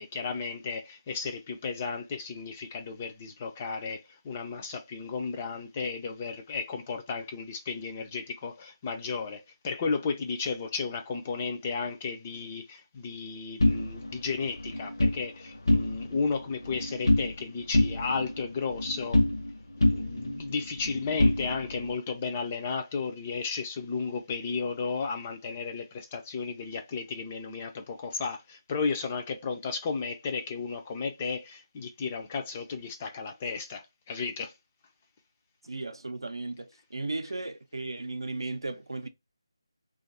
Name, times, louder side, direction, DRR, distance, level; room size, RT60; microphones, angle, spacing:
voice 1, 0.0-19.2 19.8-34.5, left 5 dB, 20° left, 0.4 m, -34 dB
sound 1, 13.6-15.2 15.6-16.2 16.5-17.4 17.7-19.5 19.8-21.9, left 1 dB, 65° left, 0.7 m, -26 dB
voice 2, 35.6-39.1, right 2 dB, 65° right, 0.5 m, -35 dB
2.5 x 2.4 x 3.9 m
figure-of-eight pair, 160°, 3 cm